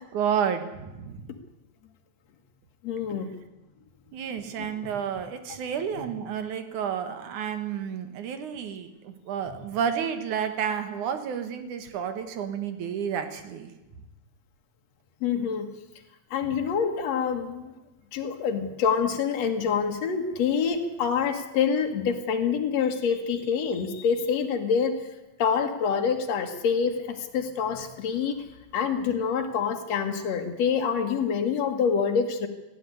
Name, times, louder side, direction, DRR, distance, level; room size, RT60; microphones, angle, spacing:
voice 1, 0.1-1.3 4.1-13.7 16.5-16.6, right 8 dB, 90° right, 8 dB, 3.0 m, -31 dB
voice 2, 2.8-3.3 4.6-4.7 9.5-9.6 15.2-15.7 16.3-17.7 18.1-25.0 25.4-28.4 28.7-32.5, left 6 dB, 65° left, 4 dB, 2.8 m, -26 dB
19.0 x 13.5 x 9.9 m, 1.0 s
omnidirectional pair, 3.4 m